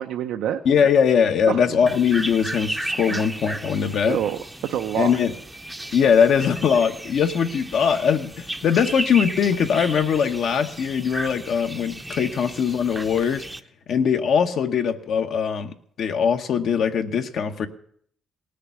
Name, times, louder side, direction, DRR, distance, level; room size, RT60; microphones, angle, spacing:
voice 1, 0.0-0.6 1.5-1.8 3.1-3.2 4.1-5.2, right 10 dB, 90° right, 6 dB, 0.7 m, -27 dB
voice 2, 0.6-4.2 5.0-5.3 5.9-13.5 13.9-17.7, left 7 dB, 60° left, 5 dB, 1.0 m, -21 dB
sound 1, 1.9-13.6, right 1 dB, 5° right, 0.6 m, -34 dB
18.5 x 6.7 x 9.4 m, 0.64 s
cardioid pair, 140°, 0 cm